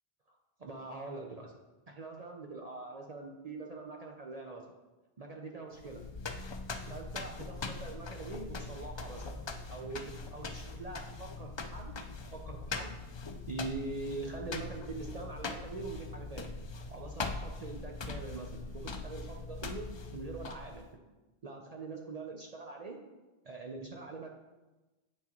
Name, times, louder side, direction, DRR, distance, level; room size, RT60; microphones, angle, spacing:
voice 1, 0.3-1.5 1.9-4.7 5.2-6.0 6.9-9.4 9.7-12.0 12.3-12.9 13.5-16.5 16.9-20.9 21.4-23.0 23.4-24.3, right 3 dB, 45° right, 0 dB, 0.7 m, -43 dB
sound 1, 5.8-20.9, left 3 dB, 45° left, 0.3 m, -42 dB
8.5 x 6.0 x 3.0 m, 1.1 s
omnidirectional pair, 1.0 m